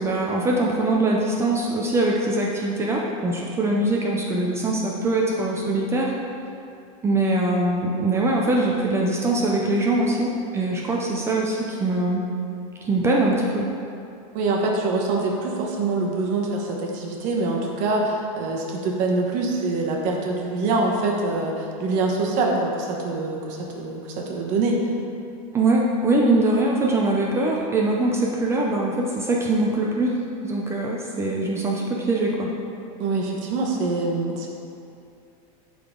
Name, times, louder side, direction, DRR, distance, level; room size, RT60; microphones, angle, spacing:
voice 1, 0.0-6.1 7.0-12.2 12.8-13.7 25.5-32.5, right 2 dB, 15° right, -2 dB, 0.5 m, -22 dB
voice 2, 14.3-24.8 33.0-34.5, right 3 dB, 45° right, -1 dB, 1.1 m, -24 dB
10.5 x 3.9 x 3.7 m, 2.6 s
supercardioid pair, 155°, 18 cm